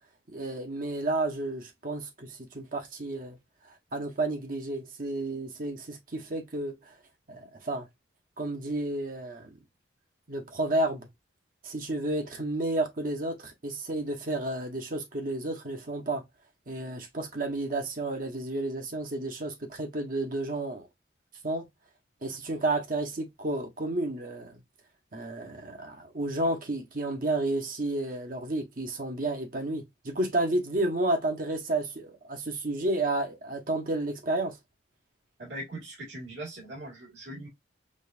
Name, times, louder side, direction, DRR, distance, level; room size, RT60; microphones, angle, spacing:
voice 1, 0.3-3.4 3.9-6.9 7.3-7.9 8.4-9.6 10.3-11.1 11.6-16.2 16.7-20.9 21.4-21.7 22.2-24.6 25.1-34.6, right 2 dB, 45° right, 1.0 m, -31 dB
voice 2, 35.4-37.5, right 1 dB, 70° right, 1.9 m, -40 dB
5.2 x 2.5 x 2.5 m
head